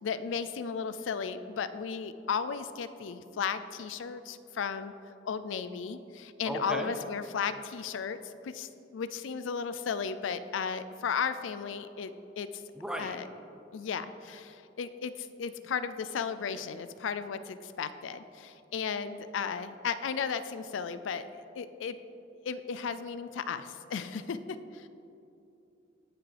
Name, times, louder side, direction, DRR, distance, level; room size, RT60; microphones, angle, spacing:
voice 1, 0.0-4.9 5.3-12.6 13.0-13.3 13.7-21.3 21.6-22.0 22.4-24.4 24.7-24.9, left 6 dB, 80° left, 12 dB, 0.4 m, -35 dB
voice 2, 6.5-6.9 12.8-13.2, right 1 dB, 5° right, 4 dB, 0.6 m, -35 dB
17.0 x 5.9 x 3.4 m, 2.8 s
head